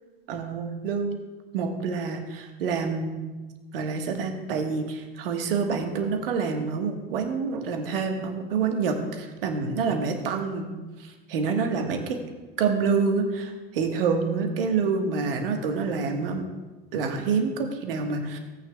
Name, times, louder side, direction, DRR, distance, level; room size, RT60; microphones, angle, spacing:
voice 1, 0.3-1.2 1.5-3.2 3.7-10.7 11.0-12.2 12.6-16.5 16.9-18.4, right 5 dB, 70° right, 4 dB, 1.5 m, -27 dB
17.5 x 9.0 x 2.3 m, 1.2 s
figure-of-eight pair, 70°, 30 cm